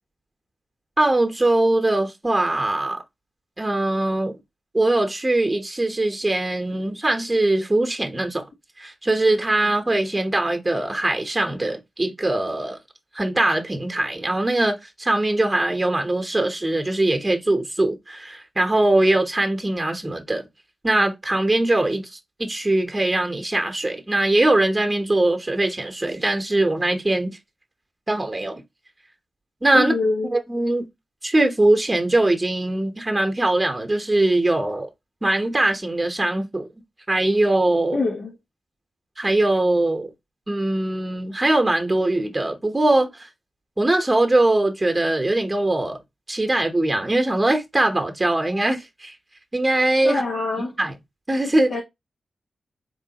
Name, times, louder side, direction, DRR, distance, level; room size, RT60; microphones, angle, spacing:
voice 1, 1.0-3.0 3.6-4.4 4.7-8.4 8.8-12.8 13.1-20.5 20.8-27.4 28.1-28.6 29.6-29.9 30.3-30.9 31.2-34.9 35.2-36.7 37.1-38.0 39.2-40.1 40.5-43.3 43.8-46.0 46.3-49.1 49.5-50.2 50.8-50.9 51.3-51.7, right 2 dB, 25° right, 0.8 m, -21 dB
voice 2, 29.7-30.3 37.9-38.3 50.0-50.7 51.7-51.8, left 3 dB, 75° left, 0.9 m, -24 dB
3.6 x 3.1 x 2.8 m
supercardioid pair, 40°, 0 cm